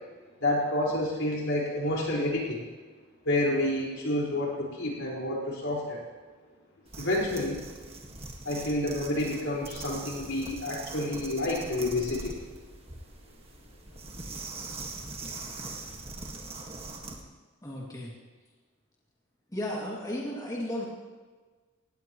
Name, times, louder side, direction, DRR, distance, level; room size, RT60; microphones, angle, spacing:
voice 1, 0.4-2.6 3.2-6.0 7.0-7.6 8.4-12.4, left 1 dB, 75° left, -3 dB, 4.7 m, -29 dB
sound 1, 6.9-17.2, right 3 dB, 30° right, 1.6 m, -42 dB
voice 2, 17.6-18.1 19.5-20.9, left 1 dB, 20° left, -4 dB, 2.4 m, -34 dB
18.5 x 17.5 x 3.1 m, 1.4 s
head